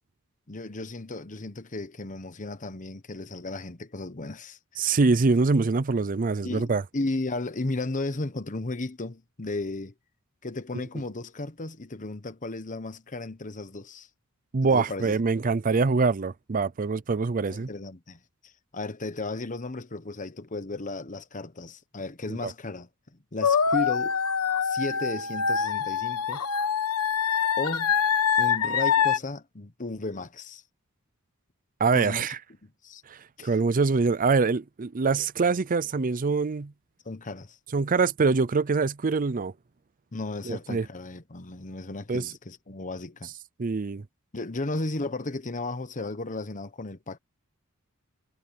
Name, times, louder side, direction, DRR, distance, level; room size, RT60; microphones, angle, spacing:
voice 1, 0.5-4.6 6.4-9.9 10.4-14.1 14.7-15.2 17.5-24.2 24.6-26.4 27.6-27.9 28.4-30.6 31.9-32.3 32.8-33.0 33.4-33.5 37.0-37.6 40.1-43.3 44.3-47.2, left 2 dB, 35° left, 1.1 m, -35 dB
voice 2, 4.8-6.8 14.5-17.7 22.3-22.5 31.8-32.4 33.1-36.7 37.7-39.5 40.5-40.9 42.1-42.3 43.6-44.0, right 4 dB, 40° right, 0.5 m, -24 dB
sound 1, 23.4-29.2, left 7 dB, 85° left, 1.3 m, -25 dB
head